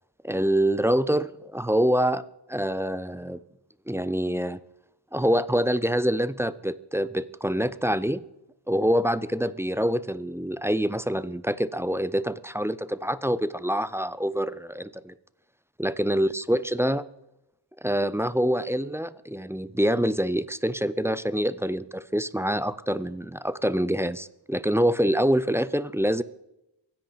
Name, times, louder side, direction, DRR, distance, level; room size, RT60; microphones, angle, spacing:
voice 1, 0.2-2.2 2.5-3.4 3.9-4.6 5.1-8.2 8.7-15.1 15.8-17.0 17.8-26.2, equal, 5° right, 16 dB, 0.4 m, -25 dB
24.0 x 10.0 x 4.0 m, 0.86 s
wide cardioid pair, 90°, 47 cm